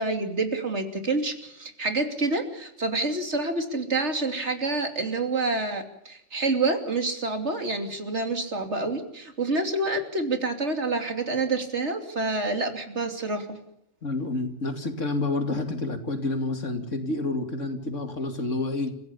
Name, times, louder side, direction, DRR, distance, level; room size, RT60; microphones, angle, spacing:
voice 1, 0.0-13.6, right 3 dB, 65° right, 6 dB, 3.2 m, -28 dB
voice 2, 14.0-18.9, left 2 dB, 80° left, 7 dB, 3.0 m, -29 dB
30.0 x 16.0 x 7.1 m, 0.79 s
omnidirectional pair, 1.3 m